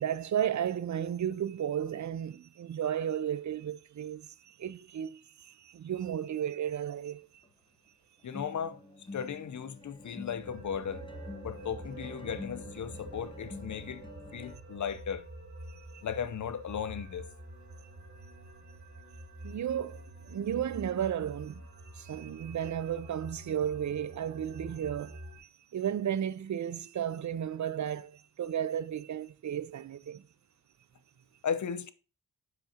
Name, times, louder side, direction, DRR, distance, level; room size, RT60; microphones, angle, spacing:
voice 1, 0.0-7.4 15.7-16.0 19.4-21.7 21.9-30.2, right 9 dB, 60° right, 0.5 m, -34 dB
sound 1, 7.4-7.5 8.3-14.6, left 3 dB, 15° left, 0.9 m, -47 dB
voice 2, 8.2-11.1 11.4-14.1 14.3-15.2 16.0-17.3 31.4-31.9, left 7 dB, 60° left, 0.7 m, -36 dB
sound 2, 9.8-21.1, right 3 dB, 75° right, 3.0 m, -54 dB
sound 3, 10.4-25.4, right 1 dB, 35° right, 2.9 m, -48 dB
7.8 x 6.0 x 2.8 m
cardioid pair, 75°, 34 cm